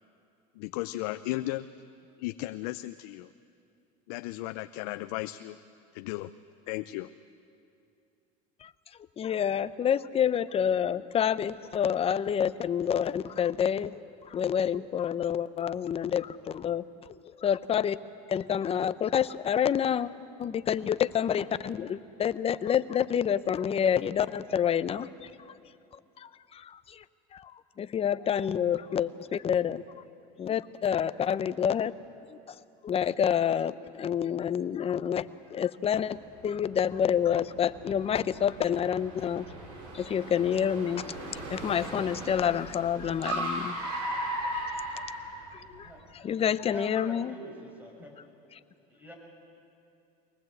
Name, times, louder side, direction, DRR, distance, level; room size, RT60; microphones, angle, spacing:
voice 1, 0.6-1.7 2.2-3.3 4.1-5.6 5.9-6.3 6.7-7.1, left 17 dB, 75° left, 12 dB, 0.6 m, -35 dB
voice 2, 9.2-14.0 14.3-16.8 17.4-18.0 18.3-20.1 20.4-25.3 26.2-27.0 27.3-29.8 30.4-31.9 32.3-32.4 32.8-33.7 34.0-36.2 36.4-39.4 39.9-41.0 41.5-45.0 45.5-47.3, left 8 dB, 30° left, 14 dB, 0.7 m, -28 dB
Car, 36.0-45.8, right 1 dB, 80° right, 6.9 m, -37 dB
voice 3, 46.6-48.1 48.9-49.1, equal, 10° right, 0 dB, 6.5 m, -44 dB
23.0 x 19.0 x 7.9 m, 2.6 s
supercardioid pair, 100°, 20 cm